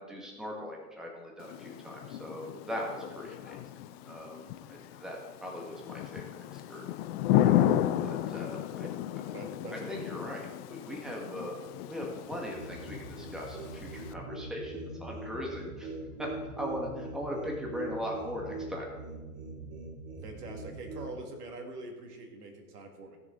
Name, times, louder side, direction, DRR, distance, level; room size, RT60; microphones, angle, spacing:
voice 1, 0.0-3.6 4.0-6.3 6.5-6.9 8.0-8.9 9.7-11.6 11.9-15.9 16.2-18.9, left 1 dB, ahead, -1 dB, 1.8 m, -39 dB
Thunder / Rain, 1.4-14.1, left 12 dB, 40° left, 0.6 m, -33 dB
voice 2, 9.3-10.2 20.2-23.2, right 2 dB, 75° right, 3 dB, 2.4 m, -44 dB
sound 1, 12.5-21.1, right 2 dB, 30° right, 2.7 m, -42 dB
16.0 x 6.8 x 3.9 m, 1.3 s
hypercardioid pair, 105°, 47 cm